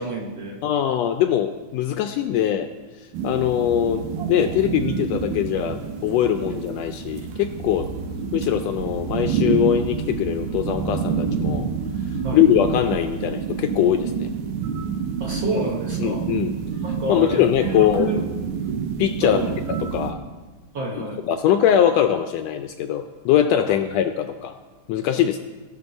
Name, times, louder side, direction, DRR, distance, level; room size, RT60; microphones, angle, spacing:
voice 1, 0.0-0.6 12.2-12.4 15.2-16.2 16.8-18.2 19.2-19.5 20.7-21.2, right 3 dB, 60° right, -1 dB, 1.3 m, -28 dB
voice 2, 0.6-2.7 3.2-7.9 8.3-11.7 12.3-14.3 16.0-16.5 17.1-18.1 19.0-20.2 21.0-24.5 24.9-25.4, left 10 dB, 80° left, 8 dB, 1.6 m, -22 dB
sound 1, 3.1-20.1, right 6 dB, 85° right, 2.3 m, -28 dB
19.0 x 6.4 x 4.1 m, 1.3 s
omnidirectional pair, 3.3 m